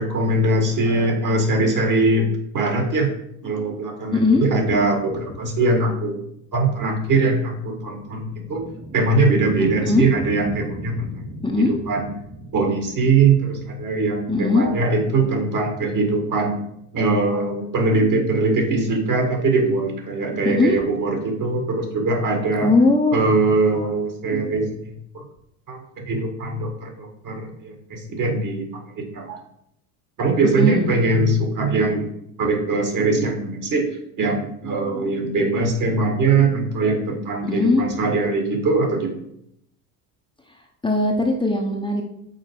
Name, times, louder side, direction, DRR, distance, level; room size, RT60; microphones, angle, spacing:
voice 1, 0.0-2.3 2.5-3.1 3.4-6.2 6.5-8.6 8.9-11.1 11.6-12.1 12.5-16.6 16.9-22.7 23.1-25.2 25.7-29.4 30.2-32.1 32.4-33.9 34.2-39.1, right 3 dB, 45° right, 3 dB, 2.0 m, -21 dB
voice 2, 4.1-4.4 9.8-10.1 11.4-11.7 14.3-14.7 20.4-20.8 22.6-23.2 30.5-30.9 37.4-37.8 40.8-42.0, left 2 dB, 10° left, -1 dB, 1.0 m, -19 dB
sound 1, 7.4-16.9, right 2 dB, 65° right, 2.5 m, -38 dB
6.0 x 4.2 x 4.7 m, 0.76 s
supercardioid pair, 90°, 43 cm